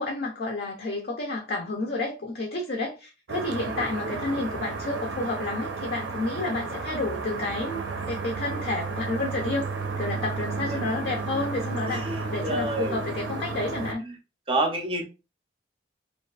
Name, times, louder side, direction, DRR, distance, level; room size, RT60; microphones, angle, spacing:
voice 1, 0.0-9.7 10.0-12.0 12.3-14.0, left 2 dB, 55° left, 1 dB, 0.5 m, -30 dB
sound 1, 3.3-13.9, right 4 dB, 85° right, 0.4 m, -32 dB
voice 2, 11.9-13.0 14.0-14.1 14.5-15.0, right 2 dB, 30° right, 4 dB, 0.5 m, -28 dB
2.6 x 2.3 x 2.3 m, 0.30 s
head